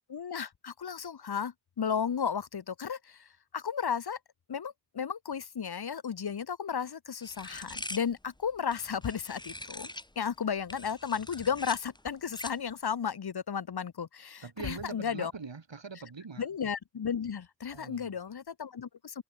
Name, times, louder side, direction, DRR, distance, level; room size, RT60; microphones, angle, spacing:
voice 1, 0.1-3.3 3.5-4.2 4.5-9.9 10.2-15.3 16.4-19.2, left 7 dB, 60° left, 0.9 m, -34 dB
sound 1, 7.2-10.1 10.6-12.7, left 1 dB, 10° left, 1.1 m, -43 dB
voice 2, 14.4-16.4 17.7-18.1, right 5 dB, 80° right, 4.4 m, -43 dB
wide cardioid pair, 55°, 44 cm